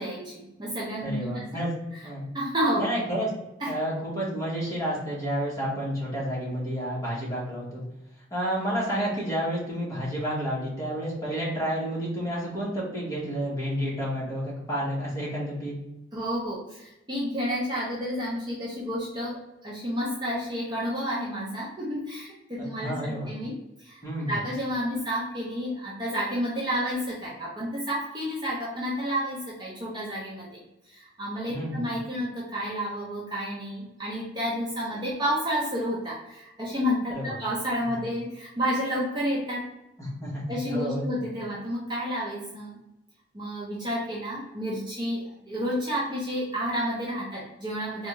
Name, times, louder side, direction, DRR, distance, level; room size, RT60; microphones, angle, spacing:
voice 1, 0.0-1.5 1.9-2.0 2.3-2.9 3.6-3.7 16.1-23.5 23.8-24.0 24.3-30.6 30.9-39.6 40.5-42.8 43.3-48.1, equal, 20° right, -6 dB, 0.6 m, -30 dB
voice 2, 1.0-1.7 2.0-2.3 2.8-3.3 3.6-7.8 8.3-15.7 22.8-23.3 24.0-24.4 31.5-31.8 37.1-37.4 37.8-38.0 40.0-41.1, equal, 15° left, -6 dB, 1.2 m, -30 dB
3.5 x 2.3 x 3.0 m, 0.92 s
head